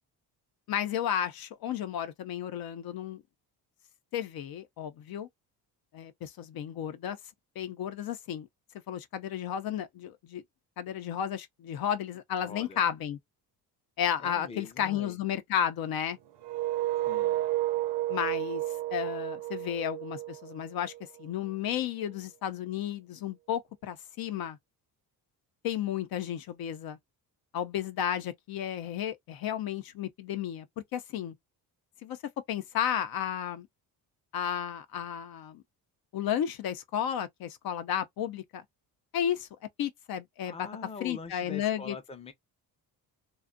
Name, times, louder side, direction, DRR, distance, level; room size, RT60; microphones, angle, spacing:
voice 1, 0.7-3.2 4.1-5.3 5.9-7.2 7.6-8.5 8.9-10.4 10.8-13.2 14.0-16.2 18.1-18.6 18.9-20.9 21.2-24.6 25.6-27.0 27.5-30.7 30.9-31.3 32.0-32.2 32.5-33.7 34.3-35.6 36.1-38.6 39.1-39.5 39.8-40.6 41.0-41.9, left 9 dB, 65° left, 0.5 m, -33 dB
voice 2, 12.4-12.8 14.2-15.2 17.1-17.4 40.4-42.3, left 4 dB, 15° left, 0.5 m, -43 dB
sound 1, 16.4-21.3, right 16 dB, 80° right, 0.6 m, -32 dB
2.5 x 2.2 x 2.5 m
cardioid pair, 95°, 40 cm